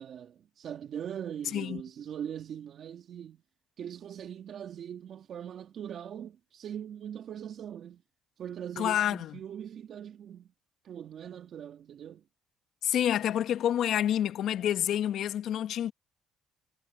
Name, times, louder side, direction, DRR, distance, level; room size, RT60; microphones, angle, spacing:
voice 1, 0.0-3.4 3.8-8.0 8.4-10.5 10.8-12.2, right 9 dB, 60° right, 2.6 m, -41 dB
voice 2, 8.8-9.4 12.8-15.9, left 10 dB, 70° left, 1.3 m, -28 dB
supercardioid pair, 80°, 0 cm